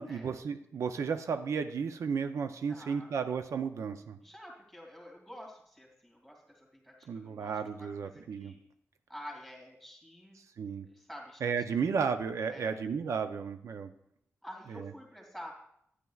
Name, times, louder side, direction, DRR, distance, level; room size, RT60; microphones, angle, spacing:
voice 1, 0.0-4.2 7.1-8.5 10.6-10.9 11.4-13.9 14.7-14.9, right 6 dB, 80° right, 8 dB, 0.5 m, -33 dB
voice 2, 2.7-3.1 4.2-8.6 9.1-10.4 10.8-11.4 11.8-12.0 12.5-12.8 14.4-15.5, equal, ahead, -2 dB, 2.5 m, -49 dB
12.5 x 9.6 x 2.4 m, 0.72 s
wide cardioid pair, 180°, 5 cm